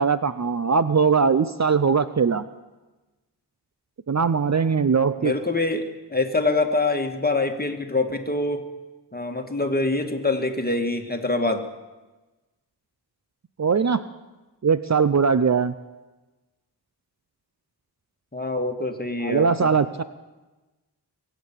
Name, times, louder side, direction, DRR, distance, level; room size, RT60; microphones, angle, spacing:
voice 1, 0.0-2.4 4.1-5.3 13.6-14.0 14.6-15.7 19.2-20.0, right 5 dB, 40° right, 13 dB, 0.6 m, -20 dB
voice 2, 5.2-8.7 9.1-11.6 18.3-19.7, left 2 dB, 20° left, 5 dB, 1.8 m, -25 dB
23.0 x 8.2 x 7.3 m, 1.1 s
wide cardioid pair, 60°, 41 cm